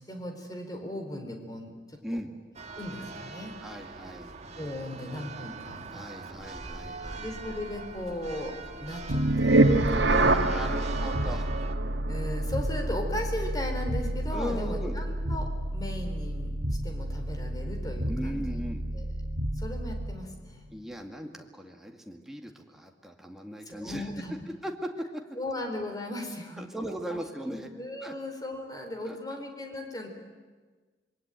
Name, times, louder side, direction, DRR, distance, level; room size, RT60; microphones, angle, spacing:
voice 1, 0.0-2.0 2.8-3.5 4.6-5.8 7.2-10.2 12.1-16.5 16.8-18.4 18.9-19.1 19.5-20.6 23.7-24.3 25.4-26.6 27.1-27.2 27.5-30.1, left 1 dB, 20° left, 4 dB, 4.1 m, -37 dB
Church bell, 2.6-11.8, right 3 dB, 40° right, 1.7 m, -41 dB
voice 2, 3.6-4.3 5.9-7.2 10.1-11.5 14.3-15.0 18.1-18.8 20.7-24.1 24.6-24.7 26.6-27.7 28.0-28.1 29.1-29.2, equal, ahead, 2 dB, 2.2 m, -38 dB
sound 1, 9.1-20.2, right 2 dB, 70° right, 1.6 m, -28 dB
26.5 x 22.5 x 9.1 m, 1.4 s
head